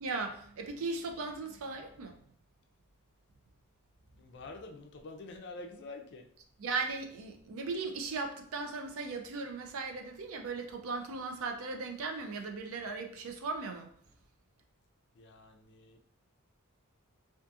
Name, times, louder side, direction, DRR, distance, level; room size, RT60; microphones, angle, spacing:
voice 1, 0.0-2.2 6.6-13.9, right 3 dB, 65° right, 4 dB, 0.4 m, -37 dB
voice 2, 4.2-6.3 15.2-16.1, left 2 dB, 50° left, 4 dB, 0.4 m, -47 dB
2.6 x 2.4 x 2.4 m, 0.62 s
head